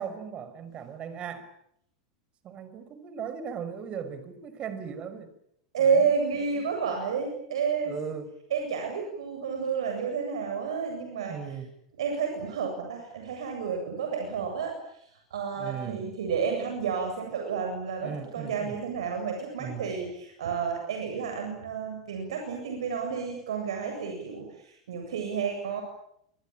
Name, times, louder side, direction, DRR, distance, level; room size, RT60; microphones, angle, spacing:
voice 1, 0.0-1.5 2.4-5.3 5.8-6.1 6.6-6.7 7.9-8.4 11.2-11.7 15.5-16.2 18.0-18.8 19.6-19.9, right 7 dB, 35° right, 12 dB, 5.7 m, -38 dB
voice 2, 5.7-8.0 8.5-11.3 12.0-14.7 15.3-25.8, right 6 dB, 80° right, 3 dB, 7.8 m, -30 dB
27.5 x 23.5 x 8.9 m, 0.74 s
hypercardioid pair, 100°, 3 cm